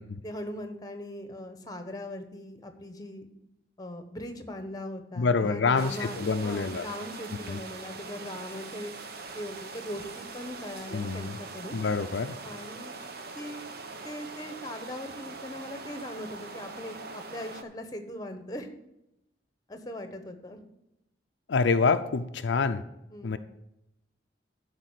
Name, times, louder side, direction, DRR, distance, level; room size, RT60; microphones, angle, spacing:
voice 1, 0.2-3.3 3.8-11.8 12.4-13.0 13.3-13.6 14.0-18.7 19.7-20.6 23.1-23.4, left 1 dB, 20° left, 7 dB, 1.0 m, -40 dB
voice 2, 5.2-6.9 7.5-7.6 10.9-11.4 11.7-12.4 21.5-22.8 23.2-23.4, left 4 dB, 80° left, 9 dB, 0.5 m, -26 dB
sound 1, 5.8-17.6, right 3 dB, 55° right, 0.9 m, -42 dB
11.5 x 5.0 x 6.6 m, 0.86 s
head